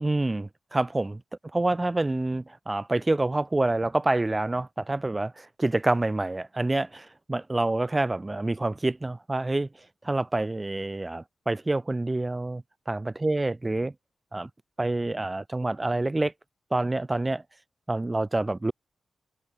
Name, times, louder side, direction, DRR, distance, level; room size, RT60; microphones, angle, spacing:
voice 1, 0.0-1.2 1.5-9.7 10.0-13.9 14.3-14.5 14.8-16.3 16.7-17.4 17.9-18.7, right 2 dB, 15° right, 0.3 m, -27 dB
wide cardioid pair, 155°, 0 cm